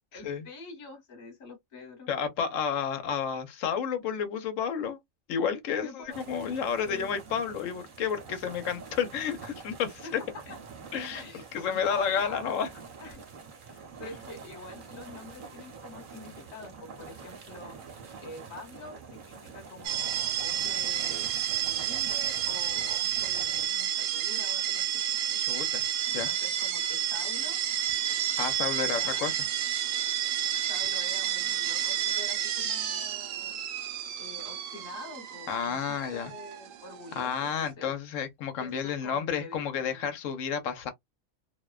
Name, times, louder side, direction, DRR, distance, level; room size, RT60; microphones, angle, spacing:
voice 1, 0.1-2.1 5.8-6.2 6.8-7.1 10.0-10.6 11.1-12.6 13.0-13.2 13.6-17.8 18.2-25.4 26.1-27.6 28.8-29.4 30.6-33.6 34.2-37.9 38.6-40.1, left 3 dB, 35° left, 1.1 m, -46 dB
voice 2, 2.1-5.0 5.3-10.2 10.9-11.3 11.5-12.7 25.4-25.9 26.1-26.3 28.4-29.4 30.5-30.6 35.5-36.3 37.2-40.9, left 7 dB, 80° left, 1.0 m, -31 dB
sound 1, 6.1-23.7, right 5 dB, 45° right, 0.8 m, -46 dB
sound 2, 19.8-37.7, right 11 dB, 80° right, 0.9 m, -30 dB
2.5 x 2.1 x 2.3 m
omnidirectional pair, 1.4 m